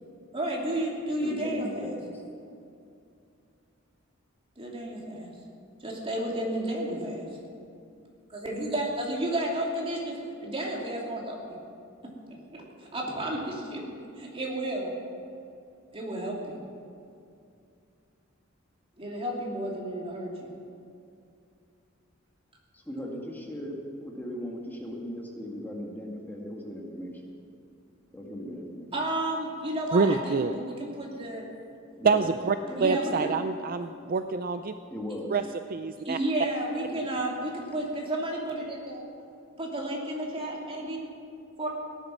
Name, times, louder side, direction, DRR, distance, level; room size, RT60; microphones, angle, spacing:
voice 1, 0.3-1.9 4.6-5.3 5.8-7.2 8.3-11.6 12.3-12.6 12.9-13.8 14.2-14.9 15.9-16.6 19.0-20.5 28.9-31.5 32.8-33.3 36.0-39.0 39.6-41.1 41.6-41.7, right 1 dB, 30° right, -2 dB, 2.9 m, -32 dB
voice 2, 1.2-2.2 22.7-27.1 28.1-28.9 32.0-32.3 32.6-32.8 34.9-35.3 36.9-37.0, equal, 10° left, -1 dB, 2.1 m, -38 dB
voice 3, 29.9-30.6 32.0-32.6 32.8-34.7 35.3-35.4 35.7-36.2, right 4 dB, 45° right, 9 dB, 0.4 m, -26 dB
18.0 x 11.0 x 6.2 m, 2.5 s
head